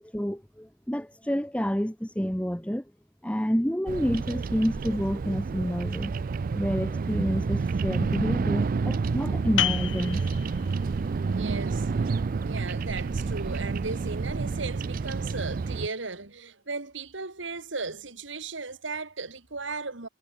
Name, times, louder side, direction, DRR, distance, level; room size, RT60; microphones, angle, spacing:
voice 1, 0.1-2.8 3.2-6.1 6.6-10.2, equal, 5° left, 1.5 m, -29 dB
Bird vocalization bird call bird song, 3.9-15.9, right 4 dB, 45° right, 0.4 m, -29 dB
sound 1, 9.6-14.9, left 10 dB, 80° left, 2.6 m, -35 dB
voice 2, 11.3-20.1, right 3 dB, 70° right, 2.6 m, -36 dB
head